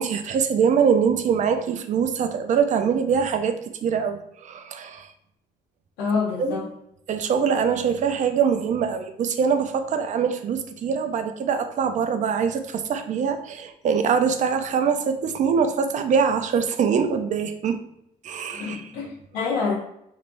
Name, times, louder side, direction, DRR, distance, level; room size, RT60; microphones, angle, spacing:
voice 1, 0.0-3.5 3.8-5.1 6.4-6.6 7.1-17.8 18.2-18.8, right 6 dB, 45° right, 8 dB, 0.4 m, -23 dB
voice 2, 6.0-6.7 18.5-19.7, left 5 dB, 90° left, -6 dB, 0.8 m, -27 dB
3.3 x 3.0 x 2.5 m, 0.77 s
cardioid pair, 110°, 17 cm